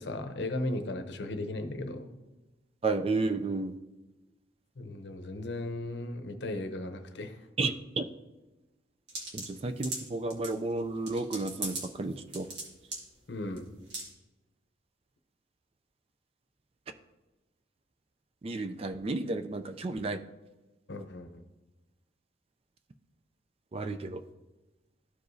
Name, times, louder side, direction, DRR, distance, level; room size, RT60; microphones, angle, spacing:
voice 1, 0.0-2.1 4.8-7.4 13.3-13.7 20.9-21.4, left 1 dB, 65° left, 7 dB, 0.7 m, -36 dB
voice 2, 2.8-3.7 7.6-8.1 9.3-12.5 18.4-20.2 23.7-24.2, right 3 dB, 30° right, 8 dB, 0.3 m, -32 dB
sound 1, 9.1-10.5 11.1-11.9 12.1-12.6 12.9-13.0 13.6-13.7 13.9-14.1, right 2 dB, 65° right, 1.7 m, -37 dB
13.0 x 4.8 x 2.7 m, 1.1 s
head